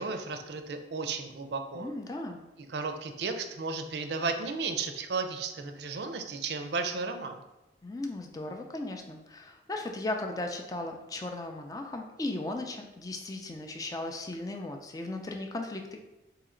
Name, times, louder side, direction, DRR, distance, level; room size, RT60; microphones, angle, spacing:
voice 1, 0.0-1.9 2.7-7.4, right 4 dB, 70° right, 7 dB, 0.5 m, -34 dB
voice 2, 1.7-2.4 7.8-16.0, left 2 dB, 20° left, 3 dB, 0.4 m, -36 dB
4.2 x 2.9 x 3.7 m, 1.0 s
head